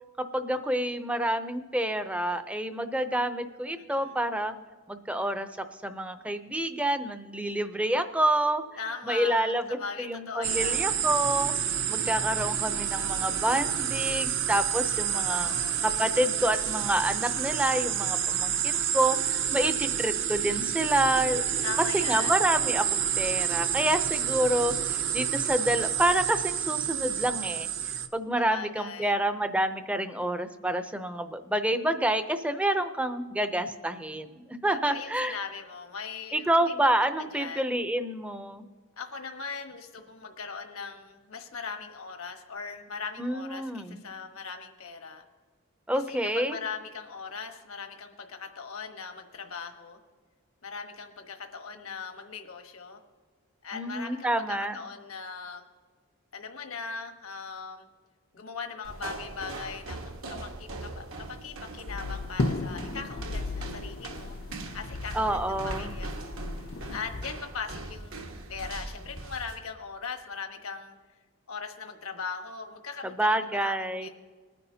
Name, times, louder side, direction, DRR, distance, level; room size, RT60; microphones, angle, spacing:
voice 1, 0.2-4.5 4.9-5.5 5.8-8.6 9.0-11.5 11.9-15.5 15.8-21.5 21.9-27.7 28.1-35.4 36.3-38.7 43.2-44.0 45.9-46.6 53.7-54.8 65.1-65.9 73.0-74.1, right 1 dB, 5° right, 9 dB, 0.5 m, -28 dB
voice 2, 3.7-4.2 8.8-11.0 15.1-15.9 19.5-20.0 21.6-22.3 27.0-27.2 28.4-29.1 34.8-37.7 39.0-45.2 45.9-50.0 50.6-53.0 53.6-55.6 56.3-57.9 58.3-64.4 64.7-66.4 66.9-71.0 71.5-74.1, left 5 dB, 80° left, 5 dB, 1.2 m, -40 dB
sound 1, 10.4-28.1, right 9 dB, 60° right, 0.7 m, -29 dB
sound 2, 58.8-69.6, right 2 dB, 75° right, 1.3 m, -41 dB
sound 3, 61.9-67.3, left 2 dB, 45° left, 0.5 m, -35 dB
20.5 x 9.8 x 2.8 m, 1.5 s
head